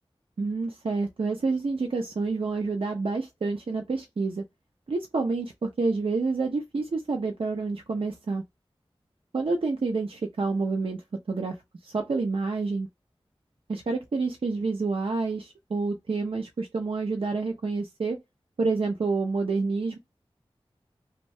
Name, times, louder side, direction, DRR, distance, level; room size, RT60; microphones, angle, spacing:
voice 1, 0.4-4.4 4.9-8.4 9.3-11.0 11.3-11.6 11.8-12.9 13.7-18.2 18.6-20.0, right 3 dB, 65° right, 0.5 m, -28 dB
2.7 x 2.1 x 3.1 m
wide cardioid pair, 75°, 10 cm